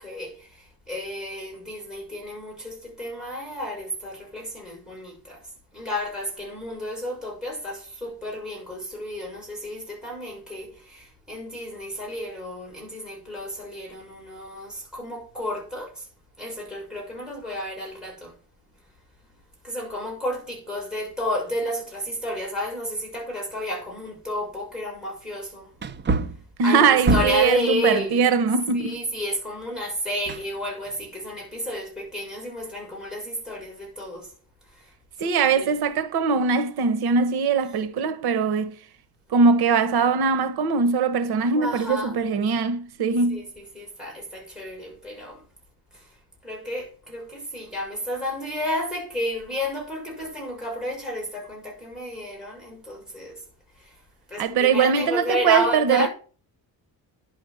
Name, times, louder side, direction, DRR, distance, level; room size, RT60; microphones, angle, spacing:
voice 1, 0.0-5.5 5.7-16.1 16.4-18.3 19.6-25.7 26.6-28.3 28.7-34.3 35.2-35.7 41.5-42.2 43.3-45.4 45.9-46.1 46.4-53.4 53.8-53.9 54.3-56.1, left 1 dB, ahead, 6.4 m, -31 dB
Wood, 23.8-23.9 24.4-24.5 25.8-27.6 30.3-31.0 31.4-31.5, right 3 dB, 30° right, 0.7 m, -27 dB
voice 2, 26.6-28.9 35.2-38.7 39.3-43.4 54.4-56.1, right 5 dB, 85° right, 1.3 m, -21 dB
10.5 x 6.4 x 7.7 m
cardioid pair, 165°, 37 cm